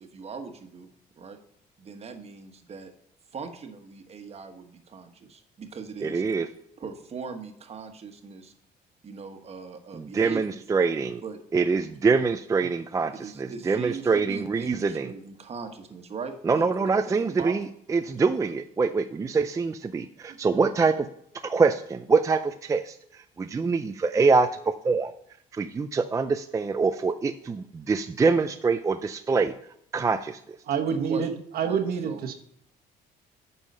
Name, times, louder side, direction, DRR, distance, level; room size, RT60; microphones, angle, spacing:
voice 1, 0.0-1.4 1.8-2.9 3.3-6.2 6.8-8.5 9.0-10.6 11.2-11.4 13.1-17.6 30.8-31.3 31.6-32.2, right 5 dB, 40° right, 6 dB, 1.3 m, -40 dB
voice 2, 6.0-6.5 9.9-11.2 11.5-15.1 16.5-21.1 21.4-25.1 25.5-29.5 29.9-30.6, right 4 dB, 20° right, 8 dB, 0.4 m, -25 dB
voice 3, 30.7-32.3, right 6 dB, 65° right, 4 dB, 1.2 m, -27 dB
9.4 x 5.5 x 5.4 m, 0.70 s
cardioid pair, 110°, 17 cm